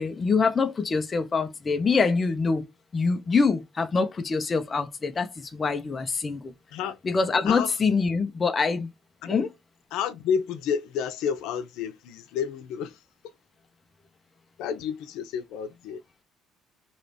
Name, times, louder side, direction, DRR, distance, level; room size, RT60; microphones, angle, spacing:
voice 1, 0.0-2.7 2.9-6.5 7.0-8.9 9.3-9.5, left 4 dB, 20° left, 0.6 m, -25 dB
voice 2, 9.9-13.0 14.6-16.0, left 7 dB, 75° left, 0.7 m, -30 dB
4.7 x 3.1 x 2.7 m
cardioid pair, 160°, 0 cm